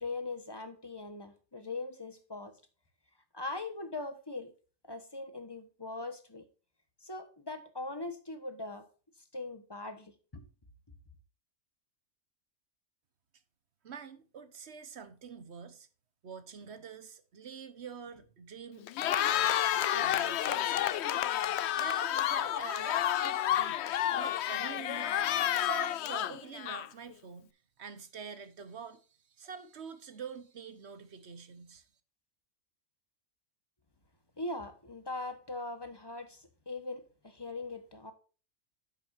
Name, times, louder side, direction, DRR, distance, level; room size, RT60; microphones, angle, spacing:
voice 1, 0.0-2.5 3.3-4.5 4.8-6.4 7.0-8.9 9.3-10.5 34.4-38.1, left 2 dB, 20° left, 1.2 m, -41 dB
voice 2, 13.8-15.9 16.2-19.5 19.9-20.9 21.7-23.8 24.1-25.1 25.6-27.5 27.8-29.0 29.4-31.8, right 6 dB, 55° right, 1.2 m, -46 dB
Cheering, 18.8-27.1, left 11 dB, 65° left, 0.7 m, -30 dB
10.0 x 8.2 x 2.6 m
omnidirectional pair, 1.4 m